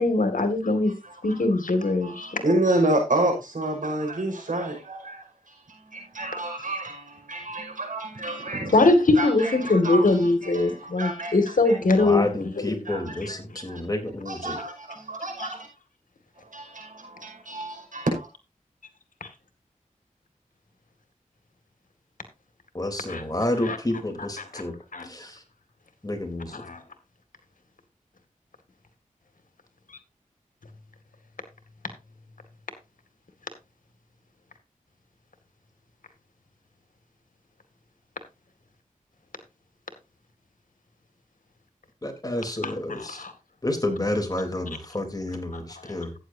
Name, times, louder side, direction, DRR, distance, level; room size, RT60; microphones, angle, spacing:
voice 1, 0.0-0.9 1.2-2.4 8.7-12.3 12.6-12.8 13.2-13.3 15.4-15.5 19.2-19.3 23.1-23.2 23.7-23.8 24.9-25.1 26.6-26.8 42.6-42.7 43.2-43.3, left 2 dB, 75° left, 2.1 m, -22 dB
voice 2, 1.0-1.4 1.8-8.9 9.2-10.3 10.5-12.1 12.9-13.1 13.7-13.8 14.3-15.7 16.5-18.3, right 1 dB, 70° right, 5.5 m, -29 dB
voice 3, 11.8-14.6 22.7-24.8 25.0-25.4 26.0-26.6 42.0-43.3 43.6-46.2, left 1 dB, 25° left, 3.5 m, -30 dB
14.0 x 9.4 x 2.7 m
cardioid pair, 50°, 14 cm